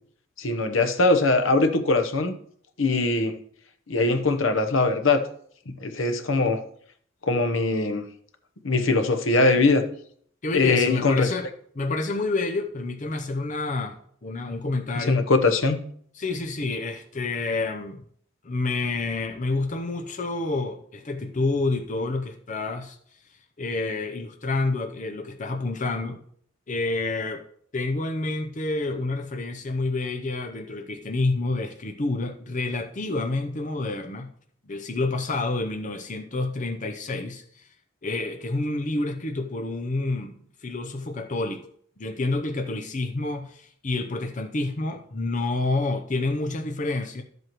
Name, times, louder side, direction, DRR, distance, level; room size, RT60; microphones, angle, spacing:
voice 1, 0.4-2.3 2.8-3.4 3.9-5.2 5.8-6.6 7.3-8.1 8.6-9.8 10.5-11.3 15.1-15.8, left 3 dB, 75° left, 8 dB, 0.9 m, -21 dB
voice 2, 10.4-11.5 11.7-15.3 16.1-18.0 18.4-23.0 23.6-26.2 26.7-27.4 27.7-34.3 34.6-37.7 38.0-40.3 40.6-41.6 42.0-47.2, left 2 dB, 40° left, 5 dB, 0.7 m, -28 dB
12.5 x 7.8 x 3.0 m, 0.63 s
head